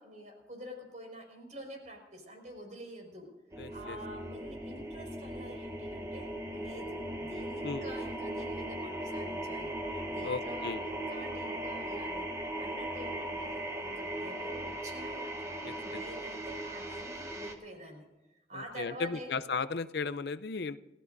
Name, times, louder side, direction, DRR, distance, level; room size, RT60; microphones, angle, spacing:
voice 1, 0.0-3.3 3.7-18.1 18.3-19.4, equal, 45° right, 1 dB, 5.3 m, -47 dB
sound 1, 3.5-17.6, right 1 dB, 20° right, 1.7 m, -38 dB
voice 2, 3.6-4.0 7.6-7.8 10.2-10.8 15.6-15.7 18.5-20.8, left 4 dB, 65° left, 13 dB, 0.6 m, -35 dB
30.0 x 14.5 x 2.7 m, 1.1 s
head